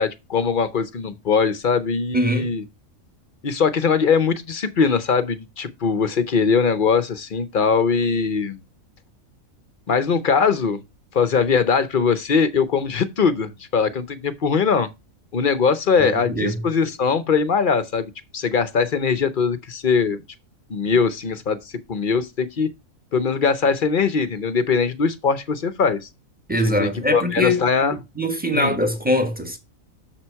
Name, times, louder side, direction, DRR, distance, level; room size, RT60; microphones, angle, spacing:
voice 1, 0.0-2.6 3.4-8.6 9.9-10.8 11.1-14.9 15.3-20.2 20.7-21.6 21.9-22.7 23.1-26.1 26.6-28.0 28.5-28.7, left 5 dB, 50° left, 0.7 m, -21 dB
voice 2, 2.1-2.5 16.0-16.6 26.5-27.6 28.2-29.6, left 1 dB, 5° right, 1.1 m, -22 dB
6.8 x 5.9 x 4.5 m
omnidirectional pair, 1.4 m